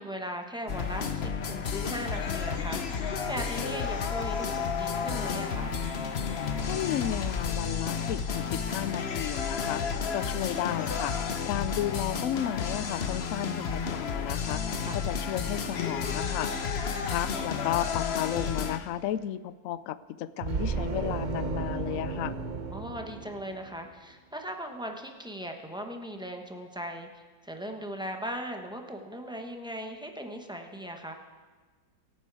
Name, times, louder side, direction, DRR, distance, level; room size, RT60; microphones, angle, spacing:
voice 1, 0.0-5.8 13.4-13.6 14.8-15.0 22.7-31.1, equal, 5° right, 3 dB, 0.7 m, -39 dB
sound 1, 0.7-18.8, left 6 dB, 45° left, 0.9 m, -31 dB
voice 2, 6.7-16.7 17.1-22.4, left 12 dB, 80° left, 15 dB, 0.7 m, -33 dB
sound 2, 20.4-23.9, right 5 dB, 55° right, 0.5 m, -34 dB
23.5 x 9.1 x 4.8 m, 1.4 s
omnidirectional pair, 2.0 m